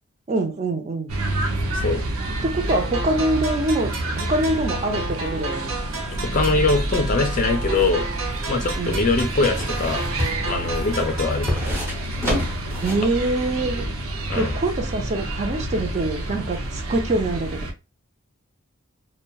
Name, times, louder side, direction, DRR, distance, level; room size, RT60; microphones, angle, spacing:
voice 1, 0.3-1.1 2.4-5.7 8.8-9.0 12.8-13.8 14.4-17.6, right 2 dB, 30° right, 5 dB, 0.4 m, -24 dB
sound 1, 1.1-17.7, right 1 dB, 80° right, 0.6 m, -28 dB
sound 2, 2.7-11.7, right 3 dB, 65° right, 0.9 m, -33 dB
voice 2, 6.1-8.1 8.5-10.0 10.5-11.6 14.3-14.6, left 3 dB, 40° left, 5 dB, 0.4 m, -22 dB
sound 3, 8.0-13.1 13.5-13.6, equal, 10° right, 0.8 m, -29 dB
2.8 x 2.1 x 2.2 m, 0.26 s
head